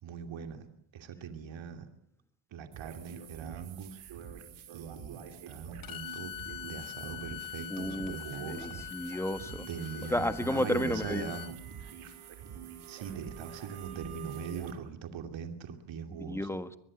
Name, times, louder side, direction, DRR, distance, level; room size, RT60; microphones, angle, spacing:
voice 1, 0.0-0.7 0.9-1.9 2.5-4.0 4.7-6.3 6.6-8.8 9.7-11.5 12.9-16.5, right 7 dB, 70° right, 2.7 m, -41 dB
sound 1, 2.7-14.7, right 8 dB, 85° right, 4.9 m, -47 dB
Bowed string instrument, 5.8-11.5, left 13 dB, 45° left, 1.1 m, -44 dB
voice 2, 7.7-9.6 10.1-11.3 16.1-16.8, left 1 dB, 5° left, 1.6 m, -32 dB
23.5 x 21.0 x 8.6 m
cardioid pair, 120°, 48 cm